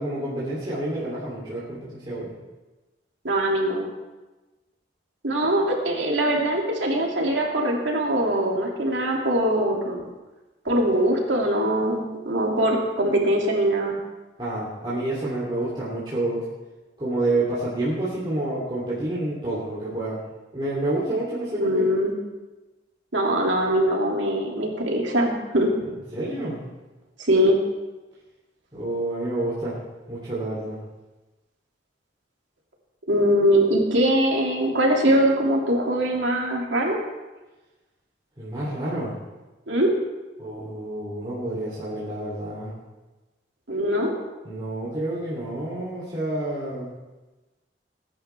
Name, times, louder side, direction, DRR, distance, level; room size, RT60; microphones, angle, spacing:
voice 1, 0.0-2.3 14.4-16.5 17.0-20.2 20.5-21.9 25.8-26.6 28.7-29.8 30.1-30.8 38.4-39.1 40.4-42.7 44.4-46.9, right 1 dB, 25° right, -9 dB, 3.1 m, -28 dB
voice 2, 3.2-3.9 5.2-10.0 10.6-14.0 21.6-22.1 23.1-25.7 27.2-27.6 33.1-37.0 39.7-39.9 43.7-44.1, right 1 dB, 85° right, -1 dB, 2.5 m, -22 dB
20.5 x 10.0 x 3.4 m, 1.1 s
head